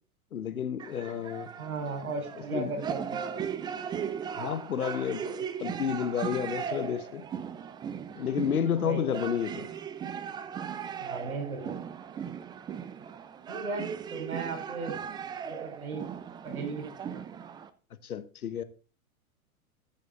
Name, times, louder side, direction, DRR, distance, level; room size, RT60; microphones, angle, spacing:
voice 1, 0.3-1.5 2.5-2.7 4.4-7.2 8.2-9.7 18.0-18.6, left 8 dB, 80° left, 1.2 m, -31 dB
sound 1, 0.8-17.7, right 8 dB, 10° right, 0.4 m, -38 dB
voice 2, 1.6-3.5 8.8-9.2 11.0-11.8 13.5-14.9 15.5-16.0 16.4-17.2, right 4 dB, 80° right, 4.4 m, -36 dB
14.5 x 6.7 x 3.7 m
hypercardioid pair, 105°, 43 cm